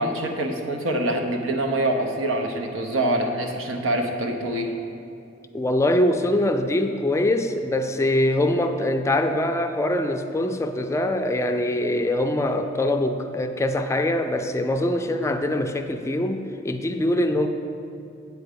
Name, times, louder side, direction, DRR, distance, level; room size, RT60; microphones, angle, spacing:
voice 1, 0.0-4.7, right 1 dB, 85° right, 3 dB, 0.9 m, -25 dB
voice 2, 5.5-17.5, left 1 dB, 15° left, 6 dB, 0.3 m, -23 dB
8.5 x 4.6 x 6.8 m, 2.7 s
head